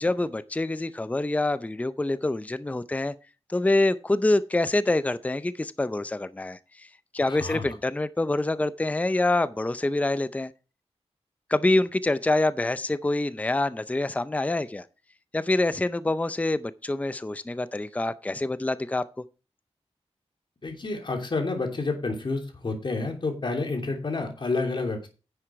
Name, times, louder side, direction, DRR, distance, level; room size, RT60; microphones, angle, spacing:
voice 1, 0.0-3.1 3.5-6.9 7.1-10.5 11.5-14.8 15.3-19.0, left 2 dB, 15° left, 0.5 m, -26 dB
voice 2, 7.2-7.6 20.6-25.1, left 3 dB, 45° left, 2.9 m, -29 dB
10.0 x 7.8 x 4.7 m
wide cardioid pair, 130°, 11 cm